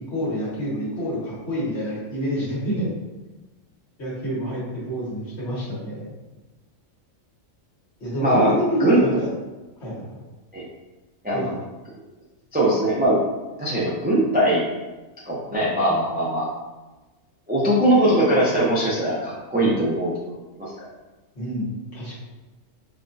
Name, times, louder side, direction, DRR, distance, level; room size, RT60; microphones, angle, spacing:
voice 1, 0.0-2.9 4.0-6.1 8.0-9.3 9.8-10.2 11.3-11.6 21.4-22.1, equal, 55° left, -7 dB, 1.6 m, -28 dB
voice 2, 8.2-8.5 8.8-9.0 10.5-10.6 11.2-11.5 12.5-13.2 13.6-14.6 15.2-16.5 17.5-20.1 20.6-20.7, right 1 dB, 10° right, -6 dB, 0.4 m, -20 dB
5.2 x 2.4 x 2.6 m, 1.1 s
omnidirectional pair, 1.4 m